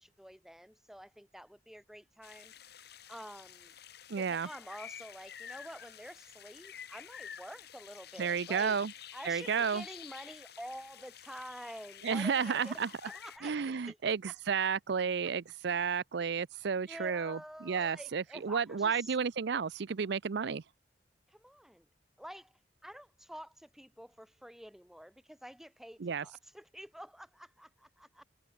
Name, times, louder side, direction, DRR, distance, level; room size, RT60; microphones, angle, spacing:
voice 1, 0.0-2.5 3.1-3.8 4.2-8.8 9.1-14.0 16.8-19.1 21.3-21.9 22.2-28.2, equal, ahead, 3.8 m, -49 dB
sound 1, 2.2-13.4, left 9 dB, 65° left, 5.6 m, -50 dB
voice 2, 4.1-4.5 8.2-8.9 9.2-9.8 12.0-12.9 13.4-20.6 26.0-26.3, right 6 dB, 70° right, 0.5 m, -32 dB
head